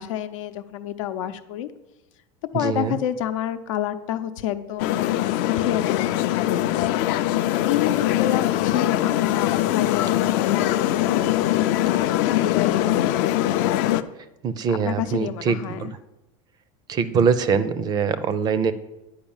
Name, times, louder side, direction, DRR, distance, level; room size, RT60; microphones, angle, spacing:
voice 1, 0.0-1.7 2.5-5.1 5.4-7.3 7.6-11.8 12.1-13.4 14.7-15.9, left 11 dB, 85° left, 10 dB, 0.8 m, -29 dB
voice 2, 2.5-3.0 14.4-15.9 16.9-18.7, right 6 dB, 25° right, 14 dB, 0.4 m, -23 dB
sound 1, 4.8-14.0, left 13 dB, 50° left, 0.5 m, -22 dB
10.5 x 4.9 x 7.2 m, 0.97 s
supercardioid pair, 160°, 16 cm